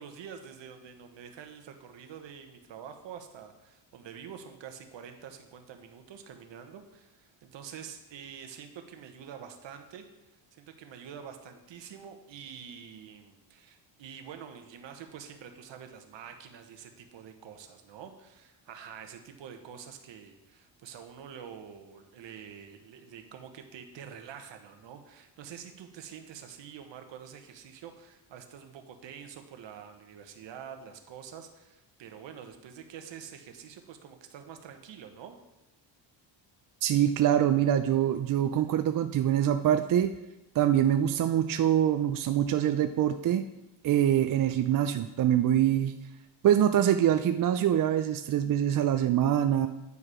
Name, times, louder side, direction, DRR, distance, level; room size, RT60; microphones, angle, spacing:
voice 1, 0.0-10.1 10.5-35.4, right 8 dB, 70° right, 6 dB, 1.2 m, -46 dB
voice 2, 36.8-40.1 40.5-43.5 43.8-45.9 46.4-49.7, right 10 dB, 45° right, 8 dB, 0.5 m, -24 dB
9.7 x 4.8 x 4.9 m, 0.97 s
cardioid pair, 105°, 46 cm